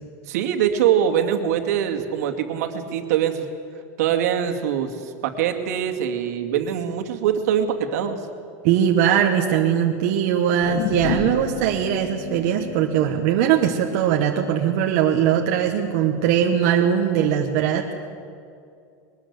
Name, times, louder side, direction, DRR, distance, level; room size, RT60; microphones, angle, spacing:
voice 1, 0.3-3.5 4.0-8.2, right 9 dB, 75° right, 5 dB, 2.3 m, -23 dB
voice 2, 8.6-17.9, right 9 dB, 50° right, 1 dB, 1.4 m, -20 dB
sound 1, 10.6-15.1 15.5-15.6, left 7 dB, 70° left, 3.0 m, -32 dB
22.0 x 20.0 x 8.3 m, 2.5 s
supercardioid pair, 175°, 9 cm